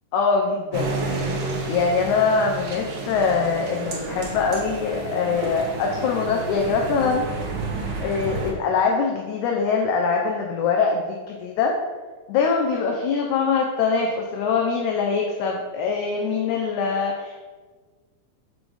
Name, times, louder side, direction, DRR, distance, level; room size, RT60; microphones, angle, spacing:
voice 1, 0.1-0.9 1.7-7.3 8.0-11.8 12.3-17.4, left 5 dB, 80° left, 1 dB, 2.1 m, -23 dB
sound 1, 0.7-8.5, right 3 dB, 60° right, 1.4 m, -30 dB
6.2 x 5.1 x 4.8 m, 1.4 s
omnidirectional pair, 3.5 m